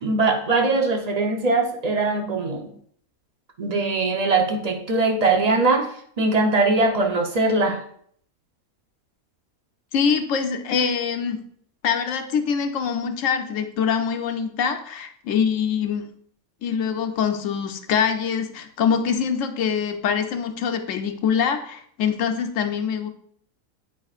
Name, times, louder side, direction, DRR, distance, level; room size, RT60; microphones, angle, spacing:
voice 1, 0.0-2.7 3.6-5.9 6.2-7.8, right 3 dB, 40° right, 2 dB, 0.6 m, -21 dB
voice 2, 9.9-11.4 11.8-16.1 16.6-23.1, left 7 dB, 65° left, 7 dB, 1.0 m, -24 dB
8.2 x 4.9 x 2.4 m, 0.63 s
omnidirectional pair, 1.5 m